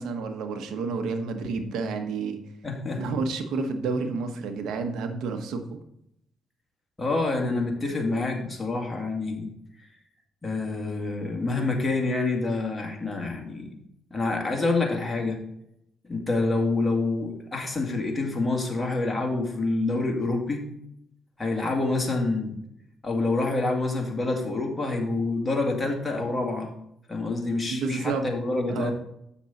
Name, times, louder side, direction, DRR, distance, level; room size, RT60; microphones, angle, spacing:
voice 1, 0.0-2.4 3.0-5.8 27.7-28.3 28.7-28.9, right 4 dB, 80° right, 6 dB, 1.1 m, -30 dB
voice 2, 2.6-3.0 7.0-9.5 9.8-9.9 10.4-13.7 14.1-15.4 16.0-20.6 21.4-22.6 23.0-26.7 27.1-28.9, left 3 dB, 20° left, 1 dB, 2.1 m, -27 dB
7.2 x 6.1 x 4.0 m, 0.77 s
cardioid pair, 90°, 0 cm